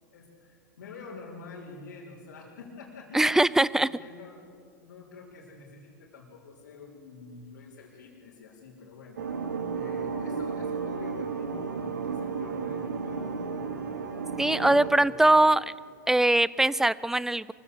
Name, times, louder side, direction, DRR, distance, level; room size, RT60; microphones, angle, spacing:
voice 1, 0.0-3.4 3.7-4.5 4.8-9.2 9.7-13.8 14.3-15.6, left 4 dB, 75° left, -6 dB, 4.5 m, -47 dB
voice 2, 3.1-3.9 14.4-15.6 16.1-17.5, right 1 dB, 5° right, 20 dB, 0.5 m, -22 dB
sound 1, 9.2-14.9, right 5 dB, 85° right, 2.5 m, -33 dB
24.0 x 16.0 x 8.3 m, 2.3 s
hypercardioid pair, 100°, 10 cm